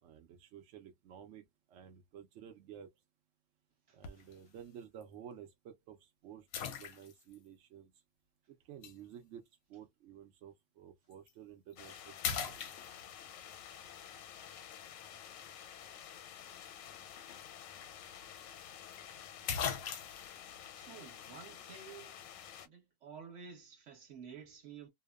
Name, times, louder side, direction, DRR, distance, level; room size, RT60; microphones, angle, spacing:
voice 1, 0.0-2.9 3.9-6.5 6.8-8.0 8.5-9.4 9.7-12.7, right 9 dB, 80° right, 0.6 m, -53 dB
voice 2, 3.9-4.2 20.7-22.1 22.6-24.9, right 6 dB, 50° right, 1.2 m, -52 dB
Small Splashes, 4.0-4.4 5.0-5.1 6.5-7.4 8.8-9.0 11.1-11.3 11.7-11.9 12.2-13.3 17.4-17.5 17.8-17.9 19.0-19.1 19.5-20.3, left 7 dB, 70° left, 0.9 m, -38 dB
sound 1, 11.8-22.7, left 9 dB, 90° left, 1.3 m, -51 dB
2.8 x 2.1 x 2.2 m
omnidirectional pair, 1.9 m